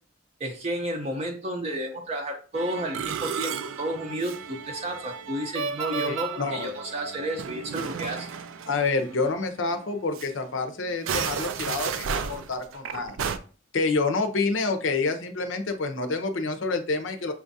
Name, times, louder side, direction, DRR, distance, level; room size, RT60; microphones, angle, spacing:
voice 1, 0.4-8.3, right 1 dB, 35° right, 3 dB, 0.5 m, -32 dB
Musical instrument, 2.6-9.4 9.7-9.9 10.1-10.3 10.9-13.4, right 6 dB, 85° right, 0.4 m, -33 dB
voice 2, 6.1-6.7 8.7-13.2 13.7-17.3, left 3 dB, 70° left, 7 dB, 0.6 m, -28 dB
5.8 x 2.4 x 2.6 m, 0.39 s
head